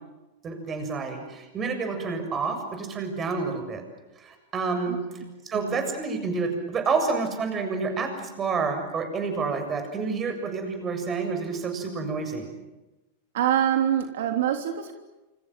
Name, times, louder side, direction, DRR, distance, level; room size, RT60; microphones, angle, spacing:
voice 1, 0.4-3.8 4.2-5.0 5.5-12.5, right 4 dB, 20° right, 6 dB, 7.3 m, -29 dB
voice 2, 4.9-5.2 5.5-5.9 13.3-14.9, right 10 dB, 75° right, 5 dB, 3.4 m, -25 dB
28.5 x 27.0 x 7.8 m, 1.1 s
supercardioid pair, 145°, 0 cm